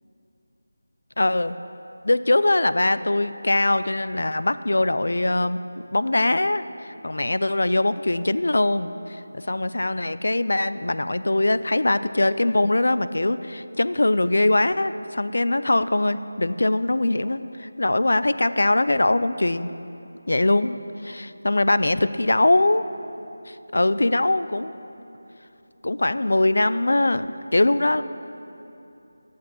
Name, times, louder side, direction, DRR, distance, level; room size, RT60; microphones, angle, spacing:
voice 1, 1.2-1.6 2.0-5.6 5.9-19.7 20.3-20.8 21.0-22.9 23.5-24.7 25.8-27.3 27.5-28.0, left 2 dB, 70° left, 14 dB, 0.4 m, -22 dB
8.5 x 8.4 x 8.5 m, 2.9 s
figure-of-eight pair, 180°, 0 cm